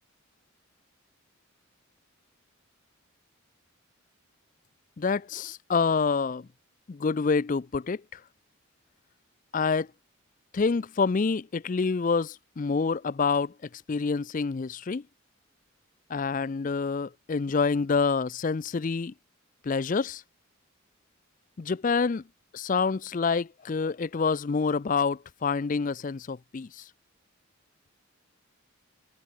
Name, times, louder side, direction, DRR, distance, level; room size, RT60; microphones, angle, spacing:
voice 1, 5.0-6.5 6.9-8.2 9.5-9.9 10.5-13.5 13.9-15.0 16.1-19.1 19.6-20.2 21.6-22.2 22.5-26.9, left 4 dB, 35° left, 0.4 m, -27 dB
head